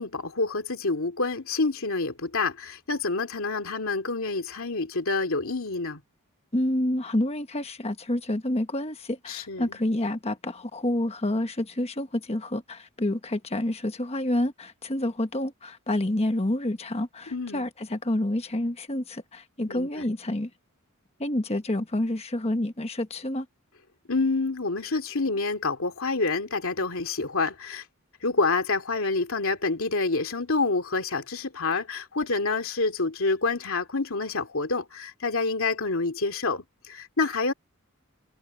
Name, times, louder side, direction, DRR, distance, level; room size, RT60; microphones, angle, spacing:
voice 1, 0.0-6.0 9.3-9.8 17.3-17.7 19.7-20.1 24.1-27.8 28.2-37.5, left 3 dB, 70° left, 2.6 m, -27 dB
voice 2, 6.5-20.5 21.2-23.4, left 1 dB, 30° left, 1.2 m, -28 dB
head